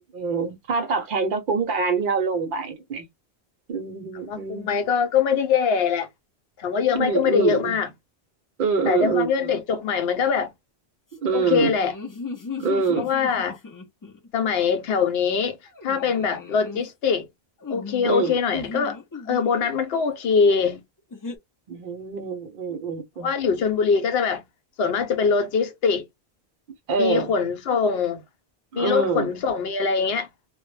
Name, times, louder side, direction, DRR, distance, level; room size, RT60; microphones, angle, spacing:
voice 1, 0.1-3.1 3.7-4.7 6.9-7.8 8.6-9.5 11.2-11.7 12.6-13.1 18.0-18.4 21.7-23.3 26.9-27.3 28.7-29.3, right 5 dB, 55° right, 0.7 m, -25 dB
voice 2, 4.2-6.1 6.6-7.9 8.9-10.5 11.3-11.9 13.0-13.6 14.3-15.6 15.8-17.3 17.7-19.0 19.3-20.8 23.2-24.4 24.8-26.0 27.0-28.2 28.7-30.3, left 6 dB, 70° left, 0.8 m, -23 dB
sound 1, 11.2-14.3 15.7-16.8 17.6-19.7 21.1-21.4, left 4 dB, 35° left, 0.3 m, -36 dB
2.1 x 2.1 x 3.1 m
omnidirectional pair, 1.1 m